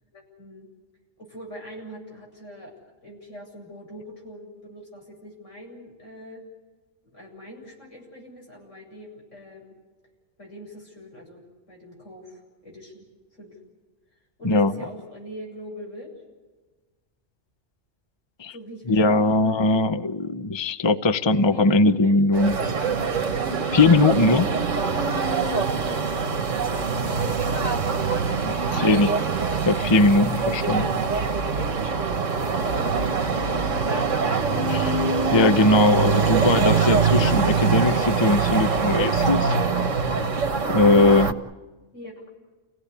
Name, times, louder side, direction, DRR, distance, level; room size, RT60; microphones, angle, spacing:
voice 1, 0.1-0.7 1.2-6.4 7.1-9.8 10.4-13.1 13.3-13.6 14.4-16.2 18.5-19.6 21.5-22.5 24.2-25.1 26.0-28.9 32.5-33.6 41.9-42.2, equal, 85° left, -1 dB, 8.6 m, -43 dB
voice 2, 18.9-22.6 23.7-24.5 28.4-29.1 29.6-31.0 34.7-35.0 35.3-39.5 40.7-41.3, left 2 dB, 25° left, 11 dB, 0.7 m, -20 dB
sound 1, 22.3-41.3, right 5 dB, 90° right, 1.7 m, -23 dB
30.0 x 17.5 x 8.2 m, 1.2 s
omnidirectional pair, 1.3 m